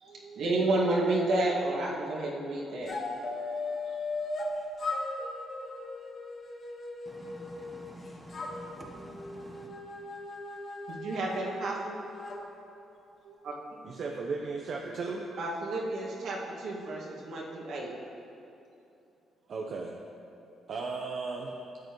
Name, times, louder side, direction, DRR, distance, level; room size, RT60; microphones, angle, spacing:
voice 1, 0.0-2.9 3.9-4.0 10.9-12.0 13.2-13.5 15.4-17.9, right 2 dB, 75° right, -4 dB, 1.9 m, -31 dB
sound 1, 2.9-4.5 4.8-7.9 8.3-12.4, left 2 dB, 50° left, 1.4 m, -38 dB
voice 2, 7.1-9.7, equal, ahead, -1 dB, 1.3 m, -48 dB
voice 3, 13.8-15.2 19.5-20.0 20.7-21.6, right 4 dB, 55° right, 0 dB, 0.8 m, -35 dB
13.5 x 8.0 x 3.1 m, 2.7 s
cardioid pair, 90°, 0 cm